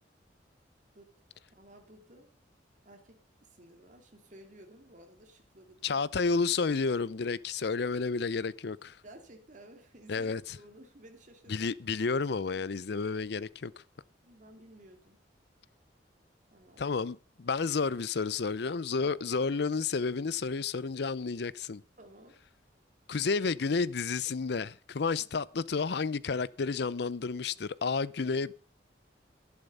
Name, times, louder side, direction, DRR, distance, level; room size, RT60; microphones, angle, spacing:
voice 1, 1.5-2.3 2.8-6.1 9.0-11.5 14.2-15.2 16.5-17.0 19.0-19.2 22.0-22.4, right 1 dB, 45° right, 2.7 m, -54 dB
voice 2, 5.8-9.0 10.1-10.6 11.5-13.8 16.8-21.8 23.1-28.5, left 4 dB, 65° left, 0.6 m, -31 dB
11.5 x 11.0 x 5.4 m
head